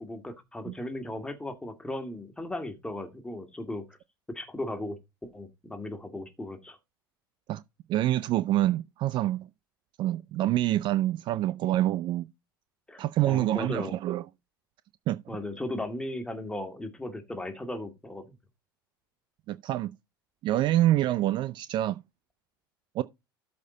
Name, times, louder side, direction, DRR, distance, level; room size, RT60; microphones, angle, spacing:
voice 1, 0.0-4.0 4.3-6.8 12.9-14.0 15.3-18.3, left 1 dB, 5° left, 2.2 m, -37 dB
voice 2, 7.9-9.5 10.0-12.3 13.0-14.2 15.1-15.2 19.5-19.9 20.4-22.0 23.0-23.1, right 14 dB, 40° right, 0.5 m, -26 dB
13.0 x 4.4 x 3.9 m
figure-of-eight pair, 75°, 12 cm